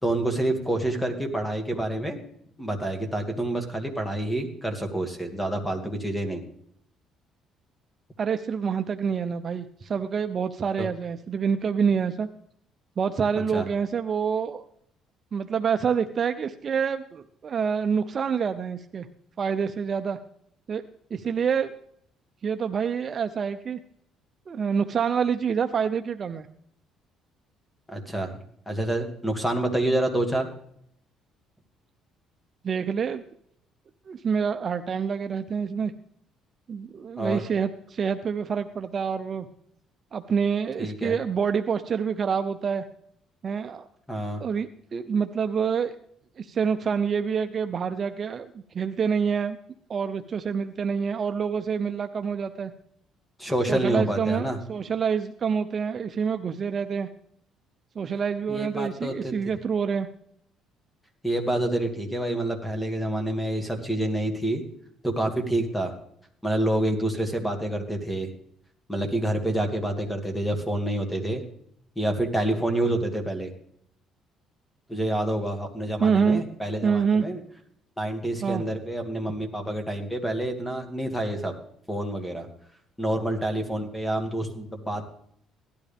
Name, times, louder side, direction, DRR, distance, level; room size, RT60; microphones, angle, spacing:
voice 1, 0.0-2.2 2.6-6.4 10.8-10.9 13.5-13.6 27.9-28.4 28.7-30.5 37.2-37.4 40.8-41.2 44.1-44.4 53.4-54.6 58.5-59.3 61.2-64.6 65.0-65.9 66.4-68.3 68.9-71.4 72.0-73.5 74.9-77.4 78.0-81.5 81.9-82.5 83.0-85.0, right 1 dB, 5° left, 5 dB, 2.2 m, -27 dB
voice 2, 8.2-12.3 13.0-14.6 15.3-19.1 19.4-20.2 20.7-20.8 21.1-21.7 22.4-23.8 24.5-26.5 32.6-33.2 34.1-35.9 36.7-39.5 40.1-42.8 43.4-43.9 44.4-45.9 46.4-49.6 49.9-52.7 53.7-57.1 58.0-60.1 76.0-76.4 76.8-77.2 78.4-78.6, right 6 dB, 35° right, 8 dB, 0.6 m, -27 dB
17.0 x 12.5 x 3.5 m, 0.68 s
cardioid pair, 130°, 0 cm